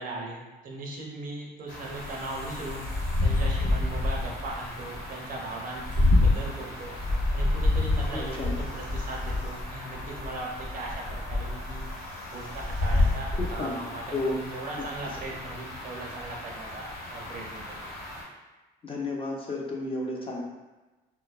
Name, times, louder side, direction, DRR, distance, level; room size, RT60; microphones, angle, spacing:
voice 1, 0.0-2.8 3.2-7.0 7.3-11.9 12.3-17.8, right 2 dB, 55° right, -1 dB, 0.6 m, -38 dB
sound 1, 1.7-18.2, left 2 dB, 65° left, 1.0 m, -29 dB
voice 2, 8.0-8.6 13.3-13.8 14.1-14.4 18.8-20.4, left 2 dB, 35° left, -2 dB, 0.5 m, -32 dB
2.6 x 2.0 x 2.3 m, 1.2 s
cardioid pair, 110°, 17 cm